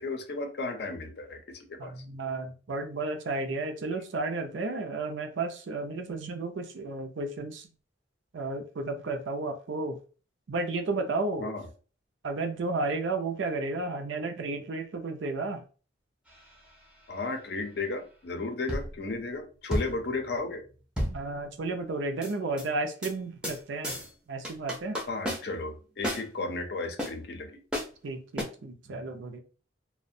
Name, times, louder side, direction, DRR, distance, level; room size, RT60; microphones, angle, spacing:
voice 1, 0.0-2.0 11.4-11.7 17.1-20.6 25.1-27.6, left 3 dB, 55° left, 0.5 m, -34 dB
voice 2, 1.8-7.7 8.3-10.0 10.5-11.5 12.2-15.6 21.0-24.0 24.3-25.0 28.0-29.4, right 3 dB, 80° right, 0.5 m, -33 dB
sound 1, 16.3-16.8 18.7-19.2 19.7-21.7 22.2-22.7 23.0-23.1 23.4-23.6 23.8-24.1 24.4-25.7 26.0-26.3 27.0-27.1 27.7-27.9 28.4-28.5, equal, 5° right, 0.5 m, -33 dB
2.4 x 2.1 x 2.6 m
head